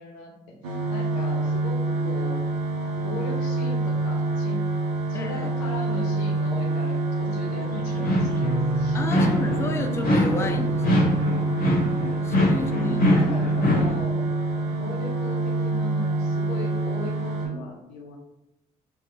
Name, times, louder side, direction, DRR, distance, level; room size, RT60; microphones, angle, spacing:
voice 1, 0.0-2.4 3.0-4.6 5.1-9.4 9.9-10.1 11.8-12.3 12.6-18.2, left 2 dB, 75° left, 1 dB, 0.6 m, -37 dB
sound 1, 0.6-17.5, right 2 dB, 75° right, 0.5 m, -26 dB
voice 2, 5.1-5.5 8.9-11.0 12.2-13.1, left 2 dB, 15° left, 5 dB, 0.3 m, -32 dB
sound 2, 7.9-8.6 9.1-9.7 10.0-14.0, left 1 dB, 45° left, 0.9 m, -23 dB
sound 3, 8.4-16.7, right 1 dB, 25° right, 0.8 m, -38 dB
2.5 x 2.2 x 2.7 m, 0.87 s
hypercardioid pair, 40°, 21 cm